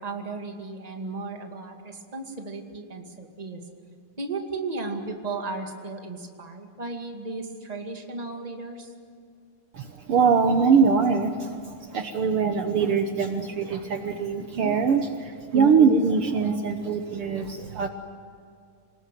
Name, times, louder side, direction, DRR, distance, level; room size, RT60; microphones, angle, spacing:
voice 1, 0.0-3.6 4.2-8.9, right 3 dB, 15° right, 3 dB, 1.4 m, -35 dB
voice 2, 9.7-17.9, right 5 dB, 85° right, 6 dB, 1.2 m, -23 dB
27.5 x 20.0 x 9.3 m, 2.2 s
omnidirectional pair, 4.1 m